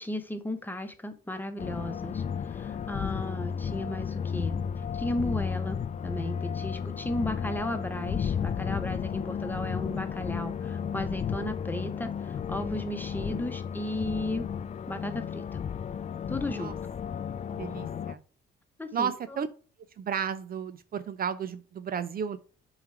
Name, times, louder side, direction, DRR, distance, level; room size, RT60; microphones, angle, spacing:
voice 1, 0.0-4.5 4.9-14.5 14.9-15.6 16.3-16.7 18.8-19.1, left 1 dB, 10° left, 8 dB, 1.0 m, -35 dB
sound 1, 1.6-18.1, left 7 dB, 35° left, 0.4 m, -33 dB
voice 2, 17.5-18.2 18.9-19.5 20.0-22.4, right 7 dB, 50° right, 13 dB, 0.5 m, -33 dB
7.1 x 3.2 x 4.7 m, 0.41 s
cardioid pair, 90°, 20 cm